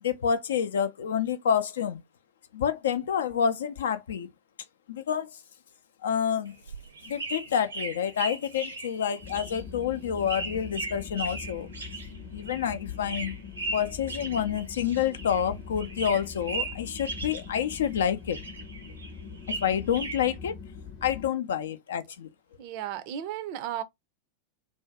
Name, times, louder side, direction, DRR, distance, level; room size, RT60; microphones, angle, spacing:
voice 1, 0.0-2.0 2.5-4.3 4.9-5.3 6.0-6.5 7.1-11.7 12.3-13.3 13.7-18.4 19.5-20.5 21.0-22.3, left 8 dB, 65° left, 0.4 m, -28 dB
sound 1, 6.5-15.5 15.8-18.0 18.3-20.3, right 3 dB, 80° right, 0.7 m, -38 dB
sound 2, 9.2-21.3, left 6 dB, 40° left, 0.9 m, -42 dB
voice 2, 22.6-23.8, right 11 dB, 45° right, 0.5 m, -34 dB
2.6 x 2.2 x 3.4 m
figure-of-eight pair, 90°, 0 cm